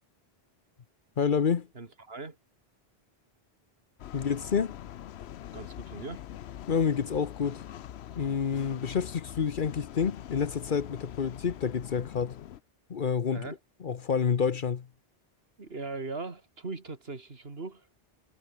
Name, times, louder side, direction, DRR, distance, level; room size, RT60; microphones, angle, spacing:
voice 1, 1.2-1.7 4.1-4.8 6.7-7.6 8.2-12.4 12.9-13.5 13.8-14.8, left 6 dB, 55° left, 1.0 m, -28 dB
voice 2, 1.7-2.4 5.5-6.2 13.3-13.6 15.6-17.9, right 3 dB, 70° right, 2.6 m, -39 dB
sound 1, 4.0-12.6, left 11 dB, 85° left, 0.9 m, -43 dB
omnidirectional pair, 1.1 m